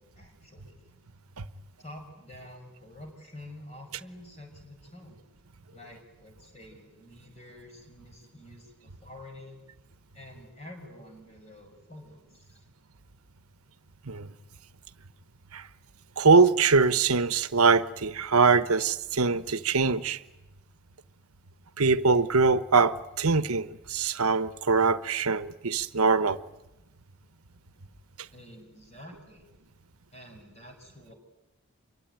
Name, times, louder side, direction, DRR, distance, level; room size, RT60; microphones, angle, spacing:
voice 1, 0.2-0.8 1.8-5.2 5.7-9.6 10.1-12.6 28.3-29.4 30.1-31.1, left 1 dB, 30° left, 6.0 m, -48 dB
voice 2, 16.2-20.2 21.8-26.4, right 4 dB, 80° right, 1.1 m, -23 dB
26.5 x 23.0 x 9.3 m
head